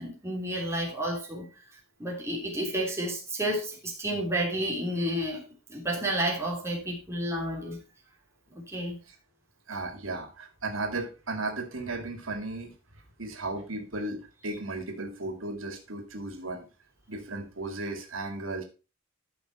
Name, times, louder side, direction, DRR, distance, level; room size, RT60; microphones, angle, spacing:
voice 1, 0.0-1.5 2.0-5.4 5.7-7.8 8.7-9.0, right 1 dB, 15° right, 3.3 m, -31 dB
voice 2, 9.7-12.7 13.2-16.7 17.1-18.6, right 2 dB, 85° right, 2.3 m, -35 dB
13.0 x 5.7 x 4.3 m
head